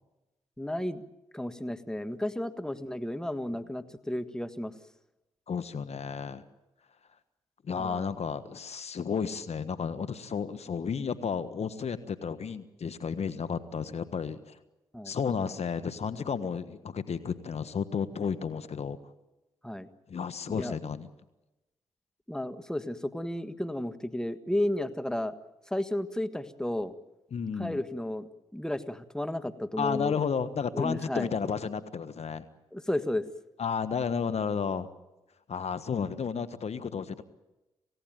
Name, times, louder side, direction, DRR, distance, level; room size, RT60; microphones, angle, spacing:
voice 1, 0.6-1.0 1.3-4.7 7.8-8.1 14.9-15.1 19.6-19.9 20.5-20.8 22.3-25.3 25.7-26.9 27.6-30.2 30.7-31.3 32.7-33.3, left 1 dB, 5° left, 9 dB, 1.7 m, -33 dB
voice 2, 5.5-6.4 7.6-14.6 15.0-19.0 20.1-21.1 27.3-27.8 29.8-32.4 33.6-34.9 35.5-37.2, left 6 dB, 60° left, 14 dB, 1.5 m, -32 dB
26.5 x 17.0 x 9.3 m, 1.0 s
supercardioid pair, 45°, 12 cm